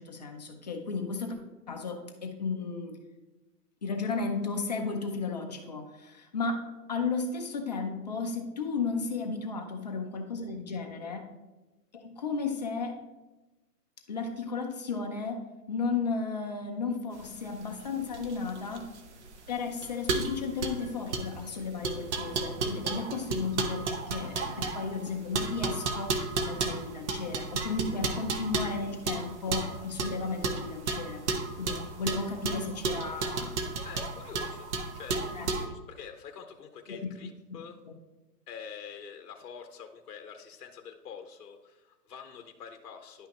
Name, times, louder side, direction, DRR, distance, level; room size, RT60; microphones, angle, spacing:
voice 1, 0.0-1.4 1.7-2.9 3.8-11.3 11.9-13.0 14.1-18.9 19.5-31.2 31.6-33.5 35.3-35.5 36.9-37.1, left 4 dB, 25° left, 3 dB, 0.5 m, -34 dB
sound 1, 17.2-35.7, right 3 dB, 45° right, 0.9 m, -33 dB
voice 2, 33.8-37.8 38.5-43.3, left 7 dB, 65° left, 6 dB, 0.9 m, -46 dB
10.5 x 5.6 x 2.9 m, 1.1 s
hypercardioid pair, 155°, 49 cm